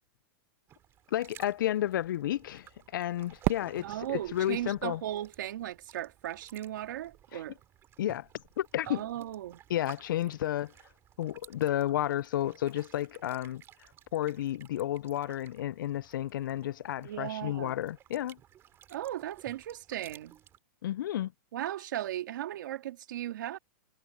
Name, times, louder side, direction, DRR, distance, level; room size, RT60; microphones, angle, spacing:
sound 1, 0.7-20.6, right 11 dB, 20° right, 6.2 m, -57 dB
voice 1, 1.1-2.7 2.9-5.0 7.3-7.4 8.0-8.3 8.6-9.0 9.7-10.7 11.2-13.6 14.1-18.4 20.8-21.3, left 12 dB, 80° left, 0.4 m, -32 dB
Fireworks, 3.4-6.3, right 21 dB, 40° right, 1.5 m, -37 dB
voice 2, 3.8-7.6 8.9-9.6 17.0-17.8 18.9-20.3 21.5-23.6, right 12 dB, 70° right, 2.4 m, -37 dB
supercardioid pair, 160°, 11 cm